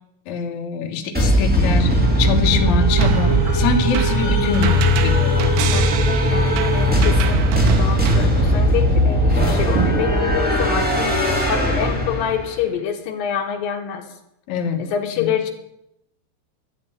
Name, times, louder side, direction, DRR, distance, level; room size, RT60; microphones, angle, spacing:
voice 1, 0.3-5.6 14.5-14.8 15.2-15.3, left 4 dB, 85° left, 3 dB, 1.6 m, -24 dB
sound 1, 1.1-12.5, equal, 5° right, 1.6 m, -18 dB
sound 2, 3.0-8.2, right 8 dB, 85° right, 3.4 m, -25 dB
voice 2, 6.3-11.2 11.5-14.0 14.8-15.5, left 8 dB, 60° left, 3 dB, 2.6 m, -26 dB
sound 3, 6.3-11.5, right 5 dB, 60° right, 6.7 m, -34 dB
13.0 x 7.8 x 9.4 m, 0.83 s
omnidirectional pair, 5.8 m